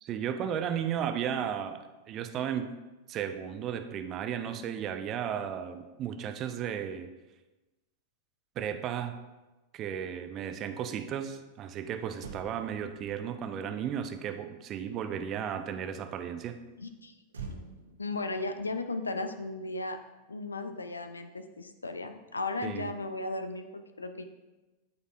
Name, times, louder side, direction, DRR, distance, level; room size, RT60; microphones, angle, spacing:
voice 1, 0.0-2.7 3.1-7.1 8.6-9.2 9.7-16.6 22.6-22.9, right 8 dB, 35° right, 8 dB, 0.5 m, -34 dB
Motor vehicle (road), 12.2-15.7 17.3-19.9 20.2-20.4, right 4 dB, 70° right, 0.8 m, -49 dB
voice 2, 16.8-17.2 18.0-20.0 20.3-24.3, left 2 dB, 80° left, 9 dB, 0.5 m, -36 dB
12.0 x 4.1 x 2.4 m, 1.1 s
figure-of-eight pair, 90°, 0 cm